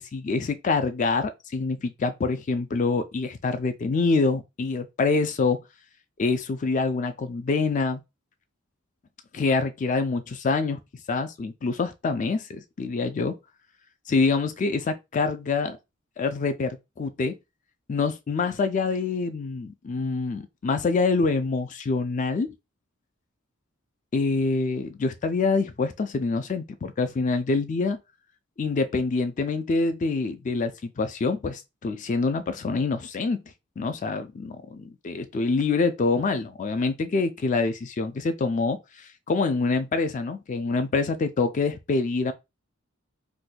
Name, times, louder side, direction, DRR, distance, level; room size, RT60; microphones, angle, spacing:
voice 1, 0.0-5.6 6.2-8.0 9.3-10.8 11.1-13.4 14.1-15.8 16.2-17.4 17.9-22.5 24.1-28.0 28.6-33.4 33.8-42.3, left 4 dB, 40° left, 0.3 m, -26 dB
2.6 x 2.2 x 4.0 m
head